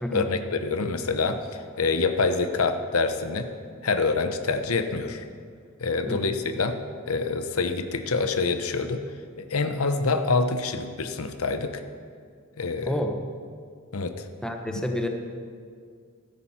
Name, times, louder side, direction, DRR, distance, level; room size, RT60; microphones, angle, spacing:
voice 1, 0.1-3.5 3.8-5.2 5.8-6.8 7.1-9.0 9.4-11.8 12.6-12.9 13.9-14.1, left 4 dB, 90° left, 8 dB, 0.9 m, -26 dB
voice 2, 12.8-13.1 14.4-15.1, left 1 dB, 5° left, 3 dB, 1.1 m, -29 dB
16.0 x 13.5 x 4.4 m, 2.1 s
head